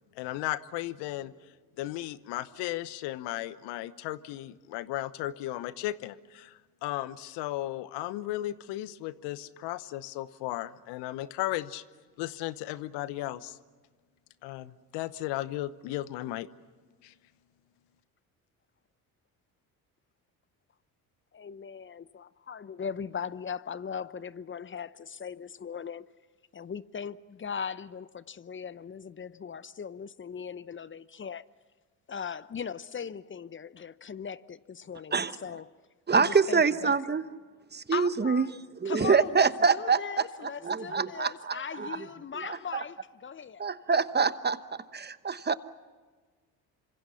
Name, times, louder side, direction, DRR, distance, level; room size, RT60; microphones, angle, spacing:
voice 1, 0.2-1.3 1.8-11.8 12.2-13.6 14.4-16.5 17.0-17.1, left 15 dB, 70° left, 1.0 m, -35 dB
voice 2, 21.3-26.1 26.5-31.4 32.1-35.7 36.1-37.0 37.9-38.6 38.8-43.7, left 6 dB, 25° left, 0.8 m, -39 dB
voice 3, 36.1-37.2 37.7-38.5 38.8-40.2 40.6-42.1 42.3-42.8 43.6-45.6, right 5 dB, 25° right, 1.0 m, -26 dB
28.0 x 26.0 x 5.7 m
hypercardioid pair, 60°, 43 cm